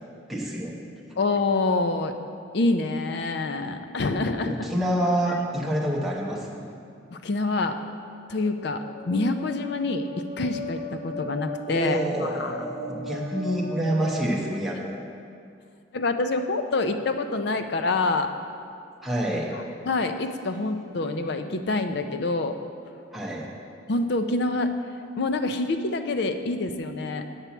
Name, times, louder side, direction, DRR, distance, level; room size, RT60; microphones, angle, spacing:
voice 1, 0.3-0.8 4.5-6.7 11.7-15.0 19.0-19.5 23.1-23.5, right 1 dB, ahead, -5 dB, 1.0 m, -27 dB
voice 2, 1.2-2.1 2.5-4.7 5.3-5.4 7.1-7.8 8.3-12.6 15.9-18.3 19.9-22.6 23.9-24.7 25.2-27.2, left 2 dB, 55° left, 8 dB, 0.4 m, -26 dB
sound 1, 8.2-15.0, equal, 75° left, 1.1 m, -37 dB
8.2 x 4.5 x 7.0 m, 2.4 s
head